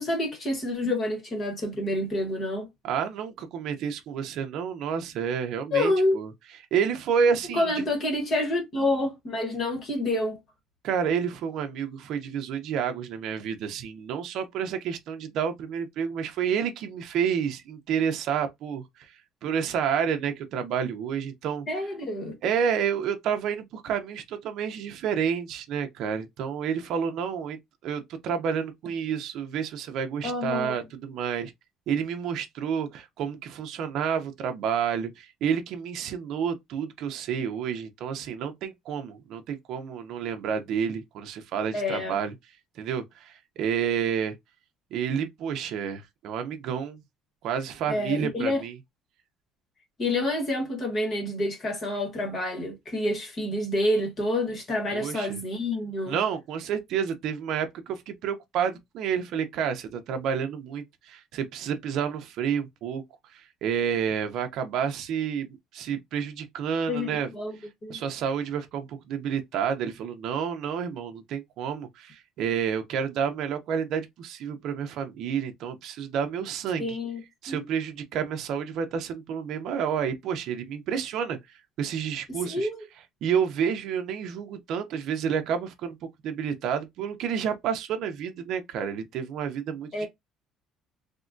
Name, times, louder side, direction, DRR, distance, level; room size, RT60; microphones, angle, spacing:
voice 1, 0.0-2.7 5.7-6.2 7.5-10.4 21.7-22.3 30.2-30.8 41.7-42.2 47.9-48.6 50.0-56.2 66.9-67.6 67.8-68.0 76.8-77.2 77.5-77.7 82.3-82.9 89.9-90.1, left 1 dB, 30° left, 1.0 m, -28 dB
voice 2, 2.8-6.3 6.7-7.9 10.8-19.1 19.4-21.7 22.4-31.5 31.9-42.3 42.8-44.3 44.9-47.0 47.4-48.7 54.9-55.4 56.1-63.0 63.3-67.3 67.9-77.0 77.4-82.7 83.2-86.0 86.2-90.1, right 7 dB, 55° right, 0.6 m, -29 dB
3.5 x 2.1 x 2.5 m
cardioid pair, 165°, 0 cm